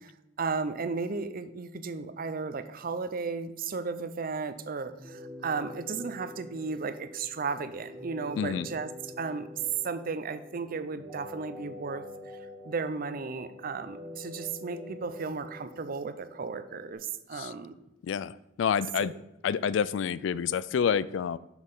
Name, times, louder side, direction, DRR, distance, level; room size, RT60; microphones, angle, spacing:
voice 1, 0.4-8.9 9.2-9.5 9.8-12.0 12.6-17.8 19.0-19.1, right 4 dB, 50° right, 12 dB, 0.5 m, -34 dB
sound 1, 5.0-17.0, left 2 dB, 15° right, 1.1 m, -46 dB
voice 2, 8.4-8.7 17.3-17.5 18.0-19.1 19.4-21.4, left 7 dB, 70° left, 18 dB, 0.3 m, -28 dB
6.1 x 5.2 x 5.5 m, 0.90 s
head